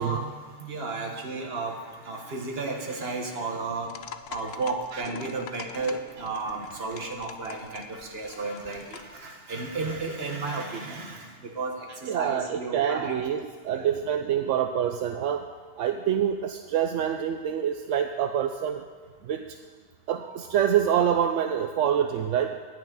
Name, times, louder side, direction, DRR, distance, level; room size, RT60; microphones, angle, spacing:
voice 1, 0.0-4.0 4.3-13.2 13.7-14.0, right 3 dB, 55° right, 2 dB, 1.6 m, -33 dB
sound 1, 3.8-9.2, left 9 dB, 85° left, 1.0 m, -45 dB
voice 2, 12.0-15.5 15.8-18.9 19.2-19.6 20.1-22.6, right 9 dB, 80° right, 6 dB, 0.9 m, -26 dB
10.5 x 6.3 x 9.1 m, 1.5 s
omnidirectional pair, 1.3 m